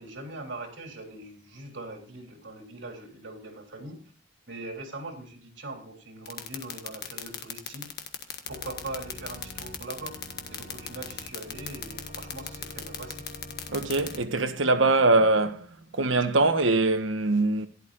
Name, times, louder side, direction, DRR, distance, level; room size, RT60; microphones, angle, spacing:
voice 1, 0.0-4.0 4.5-7.9 8.5-10.2 10.5-13.2, right 2 dB, 70° right, 3.6 m, -41 dB
sound 1, 6.3-14.2, left 11 dB, 55° left, 1.5 m, -35 dB
Organ, 8.5-14.3, left 1 dB, 80° left, 5.6 m, -45 dB
voice 2, 13.7-15.6 15.9-17.7, right 2 dB, 90° right, 1.3 m, -22 dB
15.5 x 11.5 x 2.5 m
head